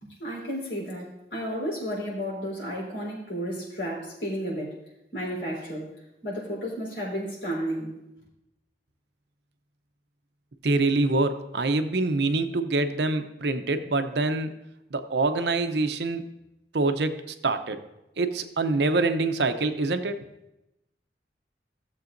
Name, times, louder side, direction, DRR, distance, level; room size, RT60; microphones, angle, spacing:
voice 1, 0.0-4.7 5.1-5.9 6.2-8.0, equal, 90° left, -4 dB, 3.9 m, -32 dB
voice 2, 10.6-14.5 14.9-16.2 16.7-17.8 18.2-20.2, right 3 dB, 70° right, 8 dB, 0.7 m, -25 dB
16.0 x 7.3 x 2.6 m, 0.90 s
head